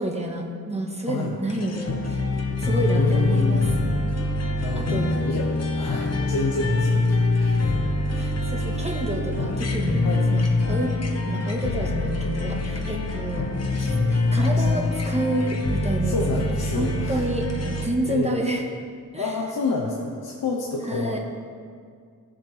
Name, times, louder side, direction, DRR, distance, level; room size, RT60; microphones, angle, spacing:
voice 1, 0.0-2.3 2.6-3.6 4.7-5.2 7.6-7.7 8.1-10.0 10.3-11.0 11.3-13.5 14.1-16.4 16.7-18.7 19.1-19.3 20.9-21.2, right 1 dB, 20° right, 1 dB, 1.4 m, -29 dB
voice 2, 1.1-1.4 2.9-3.9 4.6-7.1 7.4-7.7 10.0-10.3 14.6-14.7 16.0-17.3 18.0-18.6 19.2-21.2, left 3 dB, 90° left, -1 dB, 1.0 m, -29 dB
sound 1, 1.5-17.8, left 2 dB, 45° left, 1.2 m, -24 dB
16.0 x 7.4 x 3.4 m, 2.1 s
cardioid pair, 80°, 36 cm